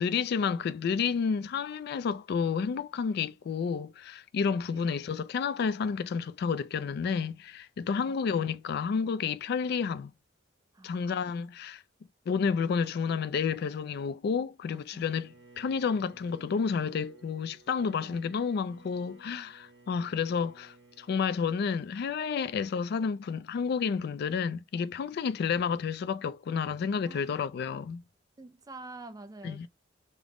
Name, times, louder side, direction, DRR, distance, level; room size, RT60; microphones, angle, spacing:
voice 1, 0.0-10.1 10.8-11.8 12.3-28.0 29.4-29.7, left 6 dB, 55° left, 0.3 m, -30 dB
voice 2, 10.7-11.2 14.9-15.2 18.0-18.2 27.1-27.4 28.4-29.7, right 2 dB, 20° right, 0.4 m, -47 dB
Bowed string instrument, 15.0-21.2, right 3 dB, 75° right, 1.0 m, -57 dB
3.4 x 2.0 x 3.6 m
head